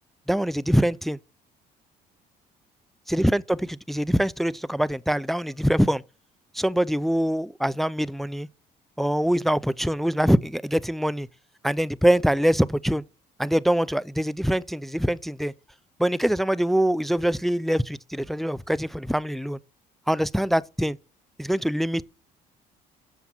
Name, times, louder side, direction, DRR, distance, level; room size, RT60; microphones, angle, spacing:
voice 1, 0.3-1.2 3.1-6.0 6.5-8.5 9.0-11.3 11.6-13.0 13.4-15.5 16.0-19.6 20.1-21.0 21.4-22.0, equal, ahead, 0.4 m, -24 dB
11.5 x 7.1 x 6.1 m
cardioid pair, 110°, 17 cm